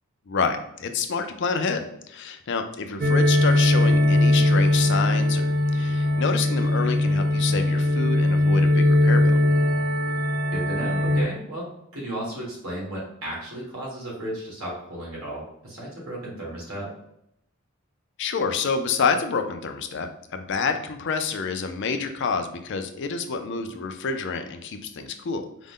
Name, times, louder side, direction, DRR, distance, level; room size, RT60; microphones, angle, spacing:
voice 1, 0.3-9.4 18.2-25.7, left 5 dB, 55° left, 7 dB, 0.4 m, -28 dB
sound 1, 3.0-11.2, left 1 dB, 40° right, 0.4 m, -20 dB
voice 2, 10.5-16.9, right 1 dB, 70° right, -4 dB, 1.4 m, -34 dB
5.0 x 2.1 x 3.7 m, 0.77 s
head